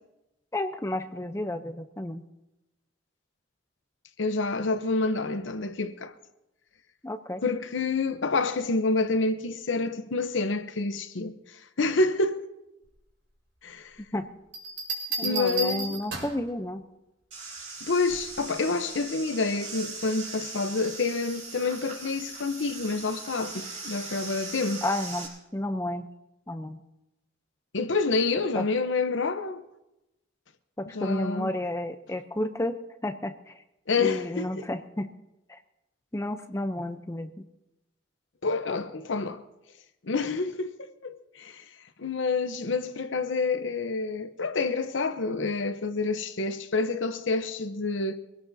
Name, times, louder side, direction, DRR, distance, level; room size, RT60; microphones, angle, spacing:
voice 1, 0.5-2.2 7.0-7.4 14.1-14.3 15.2-16.8 24.8-26.1 26.5-26.8 28.5-28.7 30.8-33.5 34.0-35.1 35.5-35.6 36.1-37.3, left 1 dB, 15° left, 0.6 m, -31 dB
voice 2, 4.2-6.1 7.4-12.5 13.6-14.0 15.2-16.0 17.8-24.8 27.7-29.6 30.9-31.6 33.9-34.7 38.4-39.4 40.0-41.6 42.0-48.2, left 3 dB, 75° left, 0.8 m, -28 dB
Bell, 14.5-16.5 18.1-18.4, right 3 dB, 65° right, 4.5 m, -32 dB
sound 1, 17.3-25.3, right 3 dB, 40° right, 4.5 m, -40 dB
23.5 x 17.0 x 2.7 m
head